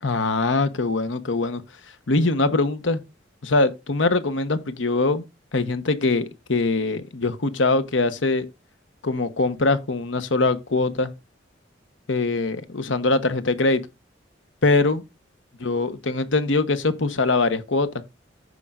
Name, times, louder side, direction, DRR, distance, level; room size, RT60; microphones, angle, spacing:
voice 1, 0.0-1.6 2.1-3.0 3.4-5.2 5.5-8.5 9.0-11.1 12.1-13.8 14.6-15.0 15.6-18.0, left 3 dB, 80° left, 1.0 m, -22 dB
14.5 x 5.4 x 2.4 m
head